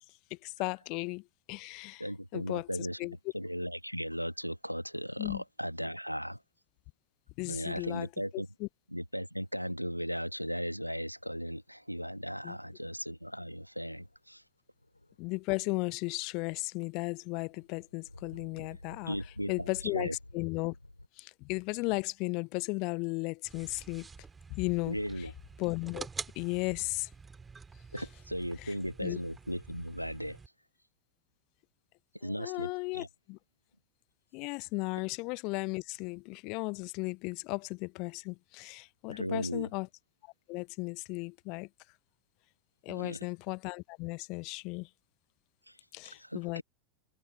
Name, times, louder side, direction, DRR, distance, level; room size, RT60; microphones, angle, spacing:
voice 1, 0.3-2.0 2.3-2.7 3.0-3.1 5.2-5.4 7.4-8.1 8.6-8.7 12.4-12.6 15.2-19.2 19.5-20.1 20.3-20.7 21.2-24.1 24.5-25.0 25.6-26.1 26.4-27.1 29.0-29.2 32.2-33.4 34.3-39.9 40.2-41.7 42.8-44.9 45.9-46.6, left 28 dB, 45° left, 0.7 m, -35 dB
voice 2, 2.0-3.0 3.3-6.4 7.5-8.5 8.9-14.4 19.1-20.2 24.9-25.3 27.9-30.4 32.2-33.1 39.1-39.7 42.9-43.2 45.7-45.8 46.0-46.6, equal, 90° right, 2.0 m, -37 dB
sound 1, 12.9-13.2 13.7-14.2 14.8-16.0 16.3-21.1, left 1 dB, 85° left, 3.9 m, -52 dB
sound 2, 23.5-30.5, right 5 dB, 15° right, 2.2 m, -47 dB
figure-of-eight pair, 90°, 0 cm